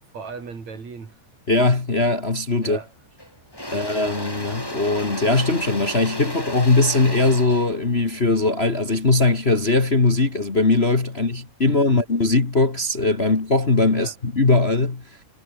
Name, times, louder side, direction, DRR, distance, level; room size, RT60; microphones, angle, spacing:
voice 1, 0.1-1.2 2.6-2.9 3.7-3.9 11.7-12.0 13.9-14.2, right 5 dB, 40° right, 5.4 m, -37 dB
voice 2, 1.5-2.8 3.7-15.0, left 3 dB, 65° left, 0.6 m, -20 dB
Engine / Drill, 2.6-2.8 3.2-9.3, left 1 dB, 5° left, 4.9 m, -34 dB
omnidirectional pair, 5.0 m